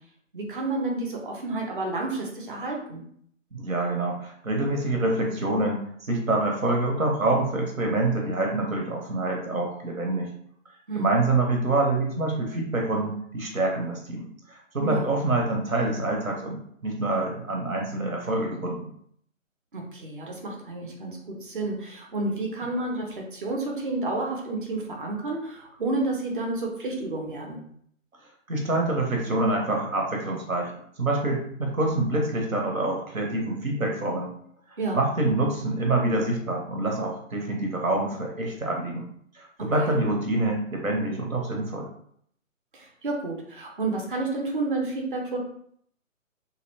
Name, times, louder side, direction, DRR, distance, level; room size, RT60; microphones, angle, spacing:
voice 1, 0.3-3.0 10.9-11.1 14.8-15.1 19.7-27.6 34.8-35.0 39.8-40.0 42.7-45.4, right 2 dB, 40° right, 0 dB, 0.6 m, -30 dB
voice 2, 3.5-10.3 10.9-18.9 28.5-30.7 31.0-34.3 34.9-39.1 39.3-41.9, right 2 dB, 80° right, 1 dB, 0.9 m, -26 dB
2.6 x 2.1 x 2.7 m, 0.65 s
figure-of-eight pair, 140°, 40 cm